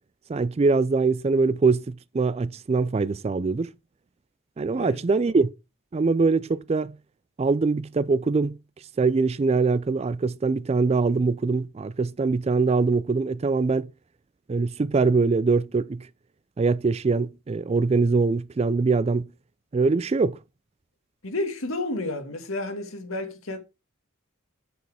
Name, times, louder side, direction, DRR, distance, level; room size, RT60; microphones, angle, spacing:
voice 1, 0.3-3.7 4.6-5.5 5.9-6.9 7.4-8.6 9.0-13.9 14.5-16.1 16.6-19.3 19.7-20.4, right 4 dB, 30° right, 0.3 m, -23 dB
voice 2, 21.2-23.6, left 2 dB, 80° left, 1.8 m, -31 dB
6.9 x 6.4 x 4.7 m
head